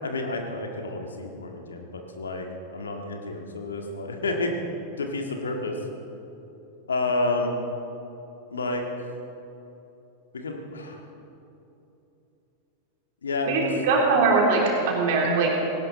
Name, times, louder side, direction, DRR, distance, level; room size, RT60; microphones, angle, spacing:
voice 1, 0.0-2.5 2.7-4.5 5.0-5.8 6.9-7.6 8.5-9.1 10.3-11.0 13.2-13.7, left 2 dB, 70° left, 3 dB, 1.8 m, -30 dB
voice 2, 13.5-15.6, right 3 dB, 50° right, -2 dB, 3.7 m, -21 dB
18.0 x 17.5 x 4.2 m, 2.9 s
figure-of-eight pair, 90°, 0 cm